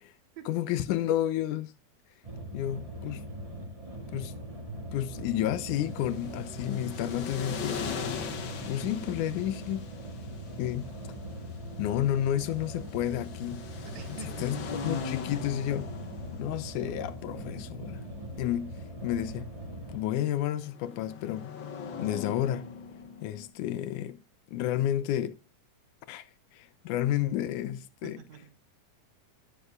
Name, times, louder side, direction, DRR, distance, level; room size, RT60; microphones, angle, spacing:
voice 1, 0.5-1.7 2.5-3.2 4.1-4.3 4.9-8.2 8.7-9.9 10.6-10.9 11.8-13.7 14.4-14.6 14.8-15.9 16.3-18.0 18.4-19.5 19.9-21.5 22.0-22.7 23.2-24.2 24.5-25.4 26.1-26.3 26.5-28.2, left 12 dB, 80° left, 2.0 m, -31 dB
sound 1, 2.2-20.0, right 1 dB, 15° right, 1.4 m, -41 dB
sound 2, 5.6-23.5, left 6 dB, 55° left, 1.4 m, -41 dB
voice 2, 6.6-7.0 13.9-14.9 28.0-28.6, right 9 dB, 70° right, 2.0 m, -48 dB
17.5 x 6.6 x 2.4 m
omnidirectional pair, 3.7 m